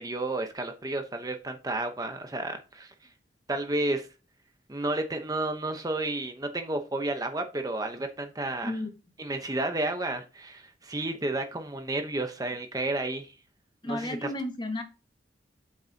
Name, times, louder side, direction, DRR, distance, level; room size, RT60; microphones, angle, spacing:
voice 1, 0.0-2.9 3.5-4.1 4.7-8.7 9.2-13.3 13.9-14.2, right 2 dB, 20° right, 0.9 m, -31 dB
voice 2, 13.8-14.8, left 1 dB, 25° left, 1.5 m, -32 dB
8.5 x 6.5 x 2.8 m
head